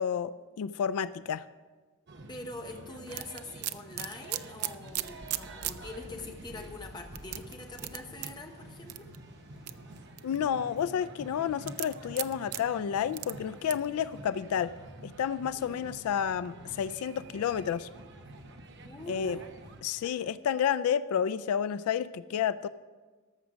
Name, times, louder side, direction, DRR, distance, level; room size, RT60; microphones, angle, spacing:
voice 1, 0.0-1.5 10.2-14.7 15.0-17.9 19.1-19.4 19.8-22.7, left 8 dB, 80° left, 15 dB, 0.3 m, -30 dB
sound 1, 2.1-19.8, right 2 dB, 50° right, 0.9 m, -48 dB
voice 2, 2.3-9.1 15.5-15.9 18.8-19.5 20.0-20.3, left 2 dB, 20° left, 4 dB, 0.9 m, -44 dB
sound 2, 3.1-5.8 6.2-6.3 7.2-8.3 8.9-9.2 9.7-10.4 11.7-12.6 13.1-13.3 13.7-13.9, right 16 dB, 80° right, 0.4 m, -35 dB
sound 3, 4.8-10.0, left 1 dB, 45° left, 2.0 m, -52 dB
13.5 x 6.3 x 6.1 m, 1.4 s
head